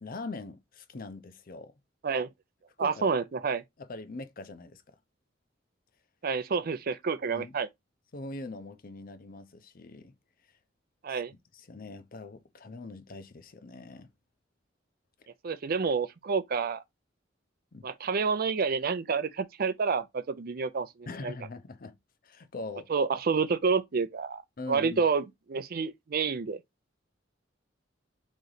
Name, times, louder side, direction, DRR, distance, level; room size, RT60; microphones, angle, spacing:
voice 1, 0.0-1.7 2.8-3.1 3.8-4.9 7.3-7.6 8.1-10.1 11.1-11.2 11.5-14.1 17.7-17.9 21.1-22.0 22.2-22.9 24.6-25.0, left 3 dB, 50° left, 0.6 m, -42 dB
voice 2, 2.8-3.6 6.2-7.7 11.0-11.3 15.4-16.8 17.8-20.9 21.2-21.3 22.9-24.4 24.7-26.6, right 5 dB, 50° right, 0.5 m, -29 dB
3.9 x 3.2 x 3.9 m
head